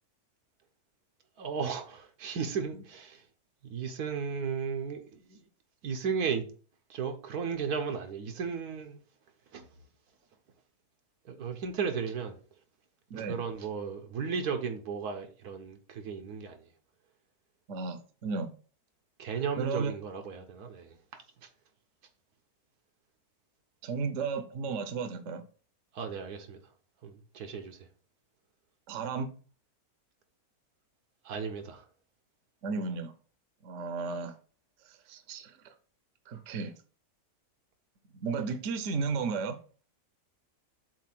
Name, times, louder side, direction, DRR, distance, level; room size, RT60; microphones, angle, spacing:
voice 1, 1.4-3.2 3.6-5.4 5.8-6.5 6.9-9.0 9.5-9.7 11.2-12.4 13.1-16.6 19.2-21.0 25.9-26.6 27.0-27.8 31.2-31.8, right 6 dB, 85° right, 1.5 m, -35 dB
voice 2, 13.1-13.4 17.7-18.5 19.6-19.9 23.8-25.4 28.9-29.3 32.6-33.1 33.6-34.4 34.8-35.7 36.3-36.7 38.2-39.6, right 4 dB, 60° right, 1.1 m, -34 dB
7.4 x 2.7 x 5.8 m
omnidirectional pair, 1.6 m